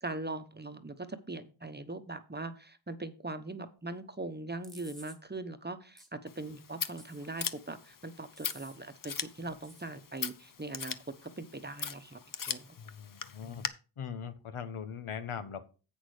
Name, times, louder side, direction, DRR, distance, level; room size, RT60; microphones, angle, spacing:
voice 1, 0.0-11.0 11.2-12.2 12.5-12.7, right 2 dB, 20° right, 9 dB, 0.9 m, -41 dB
sound 1, 4.6-5.2 6.0-6.1 7.0-7.5 8.4-8.8 9.6-9.9, equal, ahead, 1.6 m, -54 dB
Scissors, 6.3-13.7, left 7 dB, 40° left, 0.7 m, -41 dB
voice 2, 12.8-13.6 14.0-15.6, left 7 dB, 85° left, 10 dB, 1.0 m, -40 dB
8.1 x 6.1 x 4.9 m, 0.34 s
wide cardioid pair, 55°, 50 cm